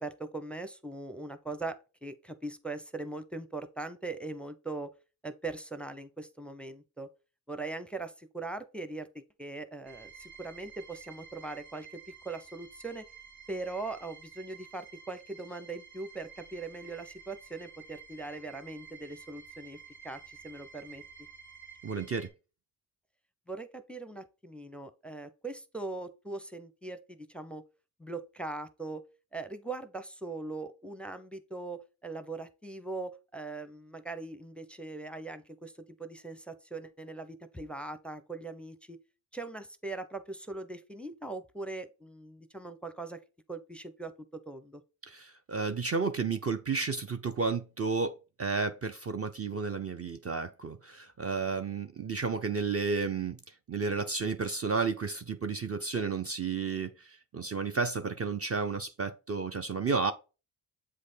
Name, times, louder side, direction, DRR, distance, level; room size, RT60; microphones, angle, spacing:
voice 1, 0.0-4.9 5.2-7.1 7.5-9.1 9.4-13.0 13.5-19.8 20.0-21.0 23.5-27.6 28.0-29.0 29.3-35.7 36.0-39.0 39.3-43.2 43.5-44.8, right 3 dB, ahead, 0.7 m, -40 dB
sound 1, 9.8-22.3, right 6 dB, 85° right, 2.9 m, -51 dB
voice 2, 21.8-22.3 45.0-60.1, right 4 dB, 30° right, 0.6 m, -32 dB
7.6 x 3.2 x 4.3 m
supercardioid pair, 45°, 46 cm